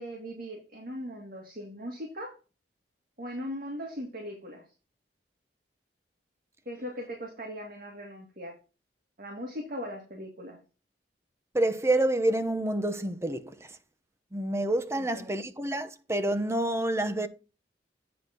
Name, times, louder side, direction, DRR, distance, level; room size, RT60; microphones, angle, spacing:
voice 1, 0.0-2.3 3.2-4.6 6.7-8.5 9.2-10.6 14.9-15.3, equal, 55° right, 2.4 m, -39 dB
voice 2, 11.5-13.8 14.3-17.3, right 1 dB, 15° right, 0.8 m, -28 dB
9.5 x 4.1 x 6.1 m
head